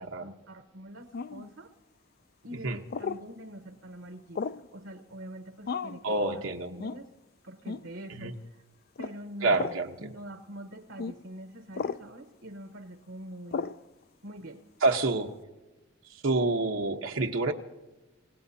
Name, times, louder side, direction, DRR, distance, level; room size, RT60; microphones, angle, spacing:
voice 1, 0.0-1.7 2.4-4.4 4.7-7.1 7.4-8.6 9.0-13.7 14.2-14.6, right 1 dB, 70° right, 7 dB, 1.0 m, -45 dB
sound 1, 1.1-1.5 2.9-3.2 4.4-4.7 5.7-6.0 6.8-7.0 7.7-7.9 9.0-9.2 9.5-9.8 11.0-11.2 11.7-12.0 13.5-13.8, left 5 dB, 50° left, 0.4 m, -34 dB
voice 2, 6.0-6.7 8.2-8.3 9.4-9.9 14.8-15.3 16.2-17.5, right 2 dB, 85° right, 3 dB, 1.1 m, -27 dB
28.0 x 17.0 x 2.8 m, 1.1 s
head